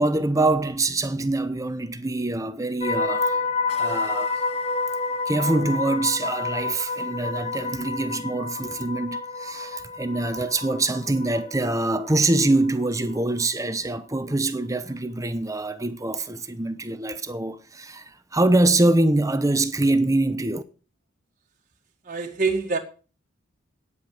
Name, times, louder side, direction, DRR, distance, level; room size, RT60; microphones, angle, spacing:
voice 1, 0.0-3.4 3.8-4.4 5.3-20.6, right 2 dB, 15° right, 0.8 m, -24 dB
sound 1, 2.8-12.9 13.2-13.5, left 3 dB, 30° left, 0.7 m, -29 dB
voice 2, 22.0-22.8, right 4 dB, 40° right, 1.7 m, -25 dB
9.7 x 8.8 x 6.8 m
head